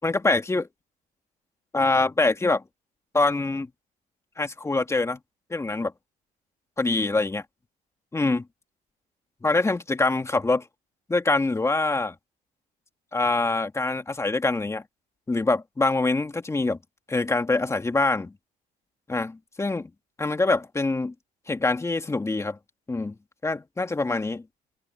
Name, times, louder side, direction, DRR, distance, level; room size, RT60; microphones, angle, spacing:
voice 1, 0.0-0.7 1.7-2.6 3.1-3.7 4.4-5.2 5.5-5.9 6.8-7.4 8.1-8.5 9.4-10.7 11.1-12.2 13.1-14.8 15.3-16.8 17.1-18.3 19.1-19.9 20.2-21.1 21.5-22.6 22.9-23.1 23.4-24.4, left 3 dB, 15° left, 2.2 m, -24 dB
cardioid pair, 110°, 17 cm